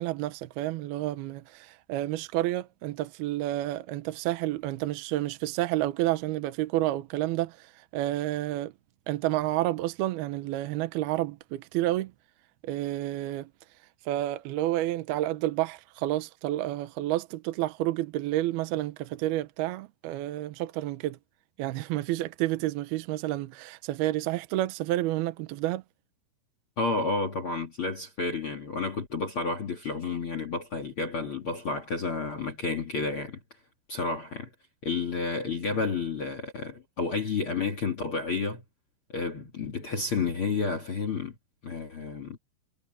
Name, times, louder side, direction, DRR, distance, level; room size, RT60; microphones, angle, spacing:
voice 1, 0.0-8.7 9.1-12.1 12.6-13.5 14.1-21.2 21.6-25.8, right 15 dB, 75° right, 2.4 m, -30 dB
voice 2, 26.8-33.4 33.9-34.5 34.8-38.6 39.1-41.3 41.6-42.4, left 4 dB, 55° left, 1.5 m, -31 dB
omnidirectional pair, 5.5 m